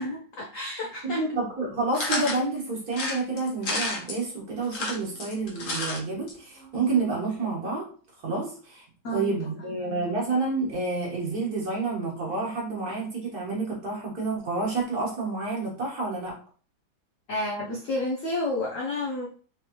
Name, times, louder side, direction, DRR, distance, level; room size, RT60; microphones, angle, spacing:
voice 1, 0.0-1.2 9.0-10.1 17.3-19.3, left 1 dB, 70° left, -1 dB, 0.7 m, -31 dB
voice 2, 1.0-7.9 8.2-8.8 9.1-16.4, right 3 dB, 50° right, -3 dB, 1.8 m, -29 dB
sound 1, 1.9-2.4 2.9-4.2 4.6-6.0 6.3-6.4 6.6-6.7, left 2 dB, 50° left, 1.2 m, -30 dB
4.3 x 3.3 x 2.9 m, 0.43 s
omnidirectional pair, 2.2 m